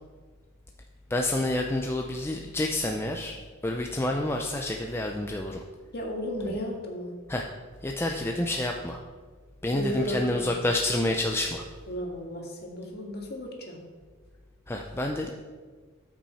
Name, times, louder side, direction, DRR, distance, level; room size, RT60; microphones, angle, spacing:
voice 1, 1.1-3.4 3.6-5.6 6.5-6.6 7.3-7.5 7.8-9.0 9.6-11.7 14.7-15.3, left 1 dB, 10° left, 2 dB, 0.5 m, -28 dB
voice 2, 5.9-7.1 9.7-10.5 11.9-13.8, equal, 50° left, 0 dB, 1.8 m, -34 dB
13.0 x 6.2 x 4.2 m, 1.5 s
head